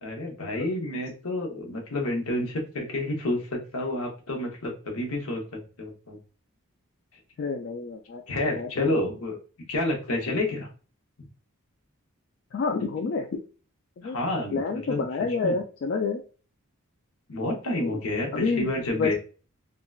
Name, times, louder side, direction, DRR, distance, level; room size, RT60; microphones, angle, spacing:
voice 1, 0.0-6.2 8.3-9.4 9.7-10.7 14.0-15.1 15.4-15.6 17.3-19.1, left 1 dB, 75° left, 1 dB, 0.8 m, -29 dB
voice 2, 7.4-8.2 8.5-9.0 12.5-13.4 14.0-14.2 14.5-16.2 17.8-18.0 18.3-19.1, left 4 dB, 50° left, 2 dB, 0.3 m, -29 dB
3.7 x 2.1 x 2.3 m, 0.37 s
head